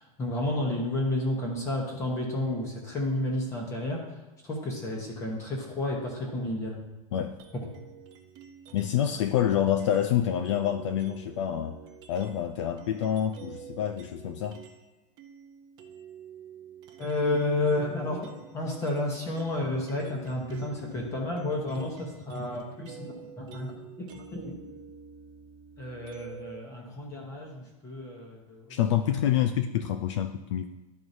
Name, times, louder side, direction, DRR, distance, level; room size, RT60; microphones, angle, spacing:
voice 1, 0.0-4.0 4.4-6.8 17.0-24.6 25.8-28.8 29.0-29.1, left 1 dB, 15° left, -1 dB, 0.9 m, -31 dB
sound 1, 7.4-9.1 9.8-14.9 15.2-26.6, right 7 dB, 20° right, 0.5 m, -48 dB
voice 2, 8.7-11.8 12.1-14.6 28.7-30.7, left 10 dB, 50° left, 7 dB, 0.4 m, -27 dB
12.0 x 4.7 x 2.7 m, 1.1 s
supercardioid pair, 170°, 19 cm